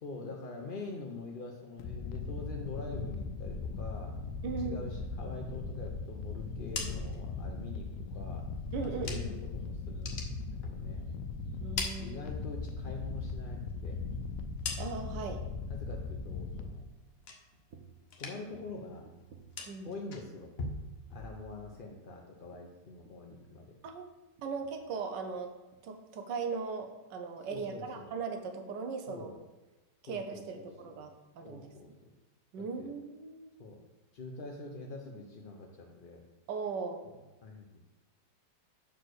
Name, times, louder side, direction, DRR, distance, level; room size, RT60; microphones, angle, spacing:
voice 1, 0.0-4.1 4.6-8.4 8.8-10.2 10.6-11.1 12.0-14.0 15.7-16.8 18.2-19.0 19.8-20.5 21.1-23.7 27.5-28.1 29.1-29.4 30.1-31.1 31.4-32.1 32.8-32.9 33.6-33.8 34.1-36.2 37.4-37.9, left 3 dB, 60° left, 1 dB, 0.5 m, -45 dB
sound 1, 1.8-16.9, left 4 dB, 80° left, 1.2 m, -39 dB
voice 2, 4.4-4.9 8.7-9.4 11.6-12.2 14.8-15.4 19.7-19.9 23.8-25.5 25.8-29.4 30.0-31.7 32.5-33.5 36.5-37.0, right 5 dB, 90° right, 5 dB, 1.5 m, -38 dB
sound 2, 6.4-9.5 9.9-11.2 11.5-12.8 13.1-15.3 15.7-16.1 16.5-17.8 18.0-18.7 18.9-21.8, left 3 dB, 45° left, 0.9 m, -43 dB
sound 3, 17.7-18.1 18.5-20.1 20.4-20.9 21.2-21.4 21.7-24.1 24.4-24.9 25.2-25.4 25.7-25.8, right 6 dB, 60° right, 1.2 m, -58 dB
6.0 x 4.6 x 6.3 m, 1.1 s
omnidirectional pair, 1.9 m